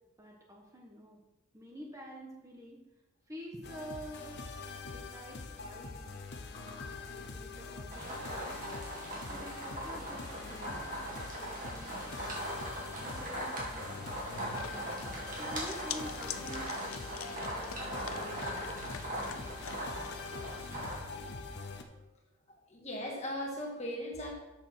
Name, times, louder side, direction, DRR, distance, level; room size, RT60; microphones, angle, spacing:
voice 1, 0.2-1.2 1.5-2.8 3.3-4.3 4.8-6.3 6.5-8.6 9.2-12.6 12.9-14.9 15.4-19.5, equal, 15° right, -1 dB, 1.2 m, -49 dB
sound 1, 3.6-21.8, left 4 dB, 50° left, 0.8 m, -44 dB
sound 2, 7.9-21.0, right 1 dB, 40° right, 2.2 m, -40 dB
sound 3, 14.6-20.7, left 9 dB, 75° left, 0.6 m, -46 dB
voice 2, 22.7-24.3, equal, 30° left, 0 dB, 1.7 m, -38 dB
7.1 x 6.7 x 6.1 m, 1.1 s
head